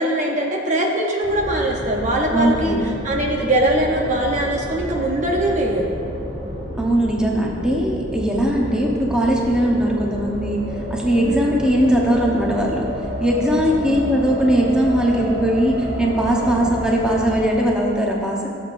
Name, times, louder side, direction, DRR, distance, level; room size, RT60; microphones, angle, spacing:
voice 1, 0.0-2.7 3.0-6.0 11.2-11.6 13.9-14.0 16.4-16.6, right 1 dB, 40° right, 0 dB, 0.8 m, -22 dB
sound 1, 1.2-17.4, equal, 75° right, 2.3 m, -30 dB
voice 2, 2.3-2.8 6.8-10.6 10.9-12.8 13.2-18.5, equal, 5° right, -3 dB, 0.9 m, -19 dB
16.0 x 7.4 x 2.6 m, 2.5 s
head